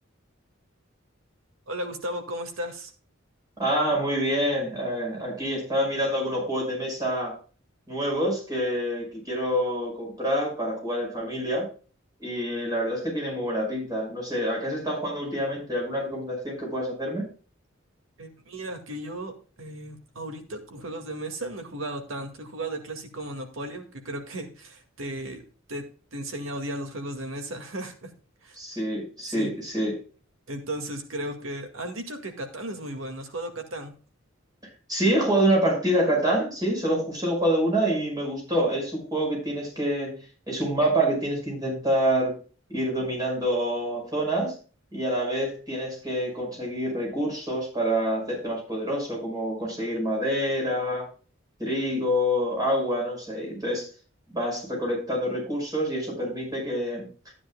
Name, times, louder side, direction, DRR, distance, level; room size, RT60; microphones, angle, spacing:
voice 1, 1.7-2.9 18.2-25.4 25.7-28.1 28.4-28.6 29.3-29.5 30.5-33.9, right 1 dB, 85° right, 5 dB, 2.0 m, -35 dB
voice 2, 3.6-7.3 7.9-11.7 12.2-17.3 28.6-29.9 34.9-40.2 40.5-42.3 42.7-44.5 44.9-51.1 51.6-53.9 54.3-57.1, equal, 20° right, -2 dB, 5.4 m, -27 dB
13.0 x 9.8 x 2.3 m, 0.37 s
head